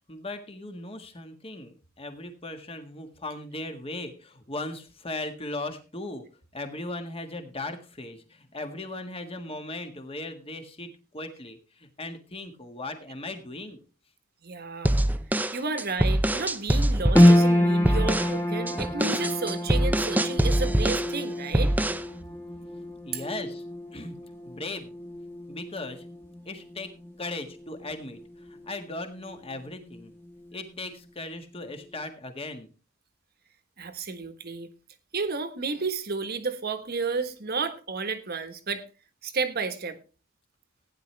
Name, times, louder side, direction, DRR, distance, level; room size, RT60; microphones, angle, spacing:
voice 1, 0.1-6.2 6.5-13.8 22.6-23.6 23.9-24.2 24.4-24.9 25.5-26.0 26.4-26.9 27.2-30.1 30.5-32.7, left 2 dB, 30° left, 6 dB, 1.6 m, -38 dB
voice 2, 14.4-15.0 15.3-21.7 33.8-34.7 35.1-38.9 39.2-40.0, right 4 dB, 50° right, 10 dB, 1.4 m, -32 dB
sound 1, 14.8-17.4 17.8-18.3 18.7-21.1 21.5-22.1, right 1 dB, 10° right, 0.5 m, -24 dB
sound 2, 17.1-29.6 29.8-30.8 31.2-31.3, left 1 dB, 10° left, 1.6 m, -27 dB
15.5 x 9.8 x 3.3 m, 0.33 s
head